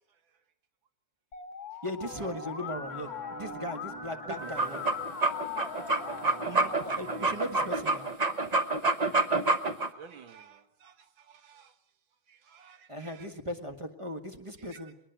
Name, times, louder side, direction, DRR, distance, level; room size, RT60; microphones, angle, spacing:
Musical instrument, 1.3-6.9, left 6 dB, 50° left, 1.4 m, -40 dB
voice 1, 1.8-4.8 6.5-8.1 12.9-14.9, equal, 15° right, 6 dB, 1.5 m, -38 dB
sound 1, 2.0-8.0, right 2 dB, 50° right, 3.9 m, -46 dB
voice 2, 4.2-4.5 9.2-9.5 9.8-11.7 12.3-13.3 14.6-14.8, right 8 dB, 70° right, 10 dB, 2.0 m, -50 dB
sound 2, 4.4-9.9, right 3 dB, 35° right, 0.7 m, -27 dB
21.5 x 20.0 x 8.0 m, 0.71 s
omnidirectional pair, 2.2 m